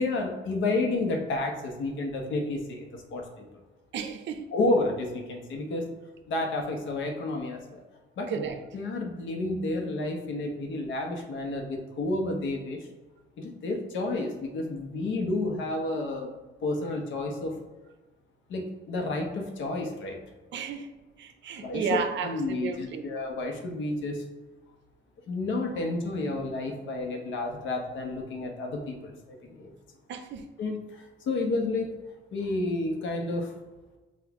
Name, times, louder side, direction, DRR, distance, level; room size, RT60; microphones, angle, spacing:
voice 1, 0.0-3.5 4.5-5.8 6.3-7.8 8.2-8.4 8.7-12.8 13.4-16.3 16.6-17.5 18.5-20.2 21.6-24.2 25.3-29.7 30.6-31.9 32.3-33.5, left 2 dB, 75° left, 1.0 m, -30 dB
voice 2, 3.9-4.4 8.3-8.6 20.5-20.9 21.2-23.1 30.1-30.4, right 6 dB, 65° right, 0.5 m, -32 dB
5.8 x 2.5 x 3.5 m
cardioid pair, 90°, 20 cm